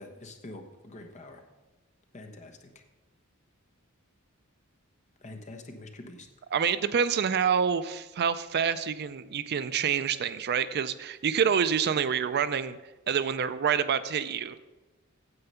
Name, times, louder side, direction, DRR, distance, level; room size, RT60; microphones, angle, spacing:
voice 1, 0.0-1.4 2.1-2.8 5.2-6.3, left 2 dB, 35° left, 4 dB, 1.2 m, -45 dB
voice 2, 6.5-12.8 13.1-14.6, right 7 dB, 50° right, 13 dB, 0.4 m, -27 dB
9.5 x 7.8 x 5.6 m, 1.1 s
head